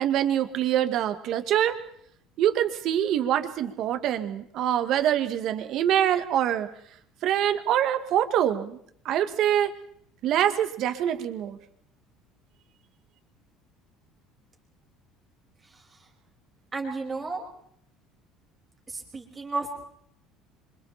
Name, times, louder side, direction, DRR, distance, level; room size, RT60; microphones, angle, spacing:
voice 1, 0.0-1.8 2.4-6.7 7.2-8.8 9.0-9.7 10.2-11.6, right 10 dB, 45° right, 8 dB, 2.3 m, -25 dB
voice 2, 16.7-17.4 18.9-19.7, right 3 dB, 15° right, 1 dB, 5.8 m, -32 dB
29.5 x 26.0 x 4.5 m, 0.66 s
cardioid pair, 175°, 0 cm